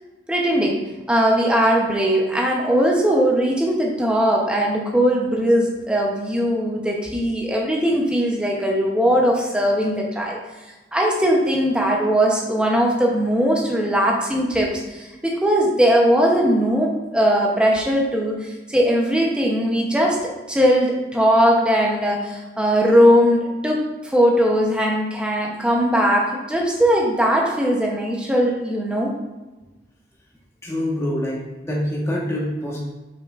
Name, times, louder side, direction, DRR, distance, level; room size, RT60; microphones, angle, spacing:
voice 1, 0.3-0.8 1.1-10.4 10.9-29.1, equal, 5° right, -2 dB, 0.9 m, -19 dB
voice 2, 30.6-31.4 31.6-32.8, equal, 15° left, -4 dB, 1.4 m, -25 dB
7.1 x 5.8 x 2.5 m, 1.1 s
head